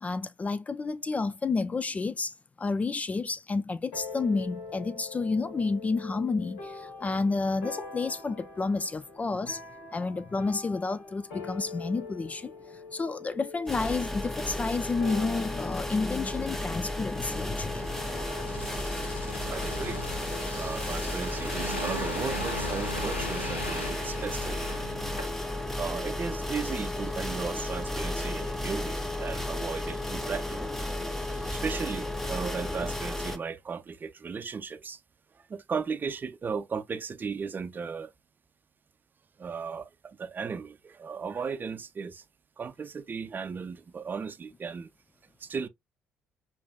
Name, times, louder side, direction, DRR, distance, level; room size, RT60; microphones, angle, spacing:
voice 1, 0.0-9.6 9.9-18.6, left 4 dB, 25° left, 0.3 m, -30 dB
sound 1, 3.9-18.6, left 3 dB, 65° left, 1.2 m, -44 dB
sound 2, 13.7-33.4, left 1 dB, 5° left, 0.8 m, -33 dB
sound 3, 17.3-25.7 26.0-26.1, left 1 dB, 85° left, 0.7 m, -38 dB
voice 2, 19.4-20.1 20.6-24.6 25.8-30.9 31.2-35.0 35.3-38.1 39.4-42.2 42.6-44.9 45.4-45.7, right 5 dB, 30° right, 0.6 m, -36 dB
6.5 x 2.6 x 2.2 m
figure-of-eight pair, 45°, 6 cm